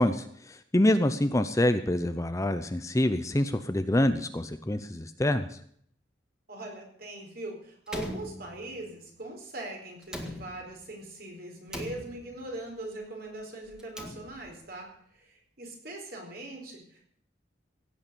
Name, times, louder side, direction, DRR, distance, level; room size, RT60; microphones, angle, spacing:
voice 1, 0.0-5.6, left 1 dB, 15° left, 10 dB, 0.7 m, -26 dB
voice 2, 6.5-17.2, right 2 dB, 55° right, 1 dB, 4.5 m, -41 dB
Slam, 7.9-9.0 10.0-10.9 11.7-12.6 13.7-14.7, equal, 5° right, 1.8 m, -41 dB
17.0 x 8.8 x 6.9 m, 0.64 s
head